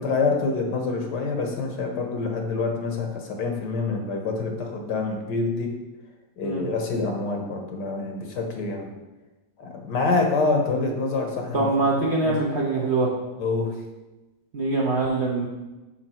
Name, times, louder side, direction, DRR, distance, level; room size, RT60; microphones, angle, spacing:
voice 1, 0.0-5.7 6.4-8.9 9.6-11.7 12.2-12.4 13.4-13.7, left 3 dB, 70° left, 2 dB, 1.6 m, -26 dB
voice 2, 11.5-13.1 14.5-15.5, right 3 dB, 45° right, -3 dB, 1.0 m, -23 dB
5.9 x 5.1 x 4.3 m, 1.1 s
omnidirectional pair, 2.0 m